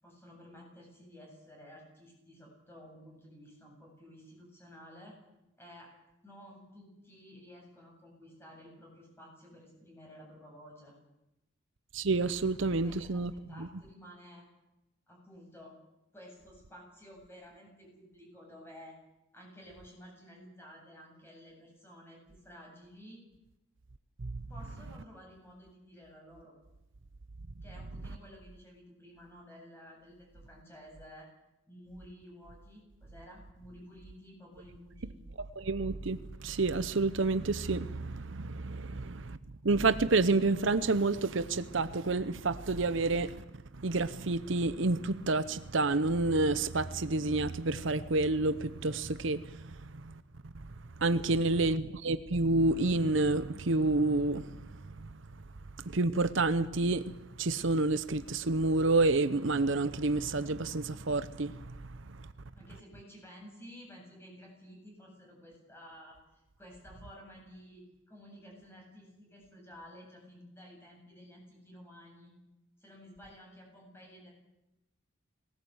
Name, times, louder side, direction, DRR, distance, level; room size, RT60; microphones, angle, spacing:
voice 1, 0.0-5.2 5.6-5.9 6.2-10.9 12.8-13.2 13.5-14.4 15.1-15.8 16.1-19.0 19.3-23.2 24.5-26.5 27.6-31.3 31.7-35.2 51.2-51.5 62.5-66.2 66.6-72.3 72.8-74.3, equal, 10° left, 7.9 m, -53 dB
voice 2, 11.9-13.3 13.6-13.7 24.2-24.4 35.6-39.4 39.6-43.4 43.8-50.1 50.5-50.7 51.0-55.2 55.8-62.3, right 3 dB, 70° right, 0.8 m, -29 dB
21.0 x 18.5 x 8.0 m
head